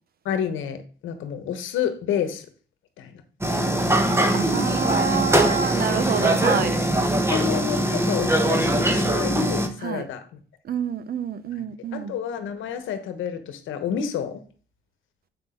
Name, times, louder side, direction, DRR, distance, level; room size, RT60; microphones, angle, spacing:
voice 1, 0.2-2.5 3.0-3.1 7.3-10.4 11.9-14.4, left 8 dB, 80° left, 1.1 m, -29 dB
sound 1, 3.4-9.7, right 1 dB, 15° right, 1.2 m, -22 dB
voice 2, 4.3-6.8 9.8-10.0 10.6-12.2, right 7 dB, 50° right, 0.7 m, -27 dB
7.6 x 5.9 x 3.7 m
cardioid pair, 90°, 20 cm